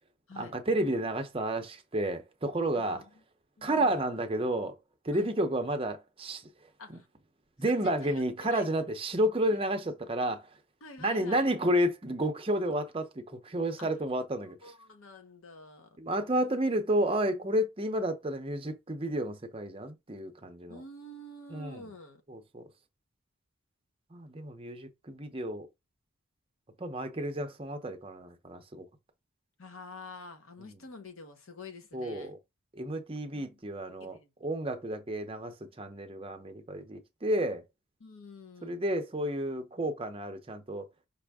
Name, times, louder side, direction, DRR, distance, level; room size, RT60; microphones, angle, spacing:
voice 1, 0.4-3.0 3.6-4.8 5.0-6.5 7.6-10.5 11.0-14.7 16.0-20.8 21.5-21.8 22.3-22.6 24.1-25.7 26.8-28.9 31.9-32.4 32.8-34.2 34.4-37.6 38.6-40.9, right 1 dB, 25° right, 0.6 m, -31 dB
voice 2, 2.7-3.1 3.6-4.0 5.1-5.3 6.8-7.1 7.7-8.2 8.5-8.6 10.8-11.5 13.8-13.9 14.4-16.0 20.7-22.2 29.6-32.4 33.3-33.6 34.0-34.3 38.0-38.8, left 2 dB, 70° left, 0.9 m, -48 dB
5.4 x 2.6 x 3.5 m
head